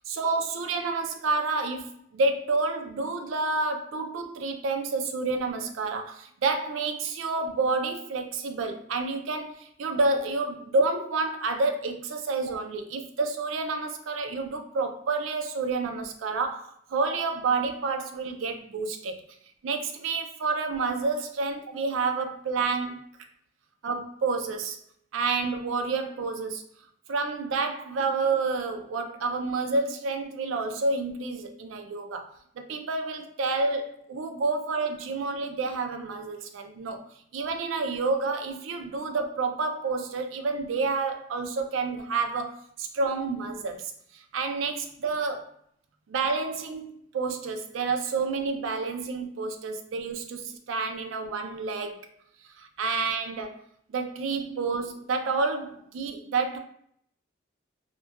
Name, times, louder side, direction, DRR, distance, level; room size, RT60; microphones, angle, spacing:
voice 1, 0.1-19.2 19.6-23.1 23.8-24.8 25.1-26.6 27.1-37.0 37.3-45.5 46.1-52.1 52.6-53.6 53.9-56.6, right 3 dB, 90° right, 0.4 m, -29 dB
3.0 x 2.1 x 2.3 m
head